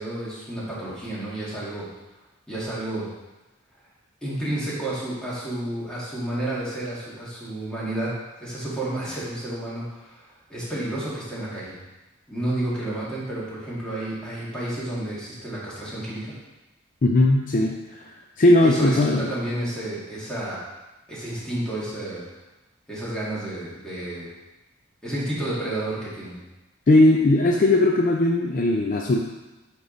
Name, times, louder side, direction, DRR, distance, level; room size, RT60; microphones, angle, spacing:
voice 1, 0.0-1.9 2.5-3.1 4.2-8.1 8.4-11.8 12.3-16.3 18.6-20.6 21.1-22.2 22.9-24.3 25.0-26.4, right 1 dB, 5° left, -9 dB, 2.1 m, -31 dB
voice 2, 17.0-18.0 18.4-19.3 26.9-29.2, left 2 dB, 40° left, 1 dB, 0.5 m, -18 dB
9.1 x 3.6 x 3.9 m, 1.1 s
head